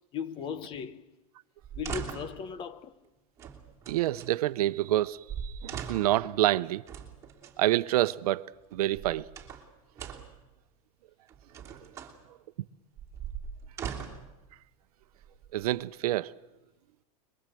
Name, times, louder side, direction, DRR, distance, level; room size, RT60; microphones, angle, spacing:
voice 1, 0.1-1.1 1.7-3.0, left 7 dB, 25° left, 0.9 m, -37 dB
sound 1, 1.6-2.4 3.4-4.3 5.0-5.1 5.3-6.2 6.9-7.6 8.7-9.7 10.0-10.4 11.3-12.2 13.0-14.3 15.1-15.8, right 7 dB, 15° right, 3.1 m, -40 dB
voice 2, 3.9-6.8 7.6-8.5 8.7-9.3 10.0-10.2 11.7-11.8 15.5-16.3, right 15 dB, 90° right, 0.8 m, -27 dB
27.0 x 22.0 x 7.7 m
supercardioid pair, 165°, 19 cm